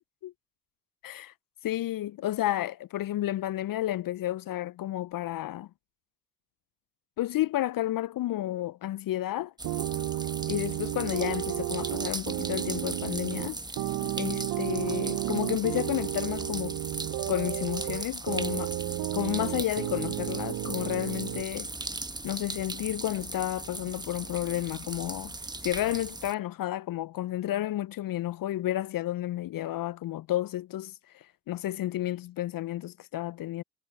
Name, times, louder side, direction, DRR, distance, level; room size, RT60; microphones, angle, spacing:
voice 1, 1.0-1.3 1.6-5.7 7.2-9.5 10.5-13.6 14.2-16.7 17.3-18.7 19.1-21.7 22.2-25.4 25.6-33.6, left 14 dB, 45° left, 0.6 m, -31 dB
sound 1, 9.6-26.3, right 2 dB, 10° right, 1.1 m, -39 dB
sound 2, 9.6-21.4, right 16 dB, 50° right, 0.6 m, -32 dB
hypercardioid pair, 50°, 48 cm